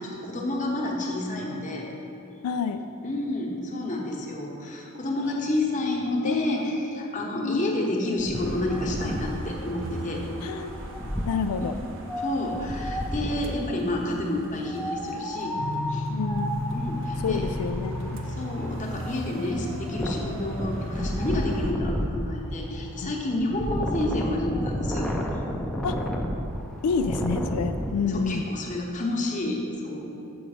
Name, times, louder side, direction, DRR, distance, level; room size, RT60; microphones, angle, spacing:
voice 1, 0.0-1.9 3.0-10.2 12.2-15.6 15.9-16.1 16.7-17.4 18.4-25.1 28.1-30.0, left 1 dB, 35° left, -1 dB, 1.0 m, -29 dB
voice 2, 2.4-2.9 5.2-5.6 6.2-7.1 7.4-7.8 10.4-10.8 11.2-11.7 16.1-16.6 17.2-18.2 23.0-23.1 25.8-26.0 26.8-28.5, left 5 dB, 90° left, 8 dB, 0.3 m, -29 dB
Wind, 8.2-13.6 14.7-27.9, equal, 5° left, 0.5 m, -32 dB
sound 1, 8.3-21.7, right 2 dB, 60° right, 0.7 m, -41 dB
sound 2, 15.6-25.3, left 1 dB, 60° left, 0.8 m, -36 dB
6.9 x 5.1 x 6.4 m, 3.0 s
head